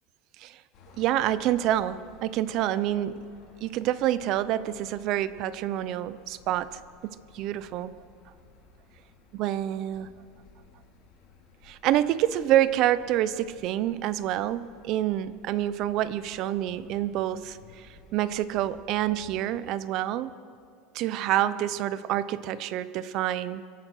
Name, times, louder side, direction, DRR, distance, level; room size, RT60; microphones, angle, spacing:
sound 1, 0.7-19.4, left 4 dB, 45° left, 3.2 m, -56 dB
voice 1, 1.0-3.2 3.6-7.9 9.3-10.1 11.7-17.9 18.1-20.3 20.9-23.7, right 12 dB, 45° right, 16 dB, 0.6 m, -27 dB
24.5 x 9.0 x 6.2 m, 2.3 s
supercardioid pair, 160°, 0 cm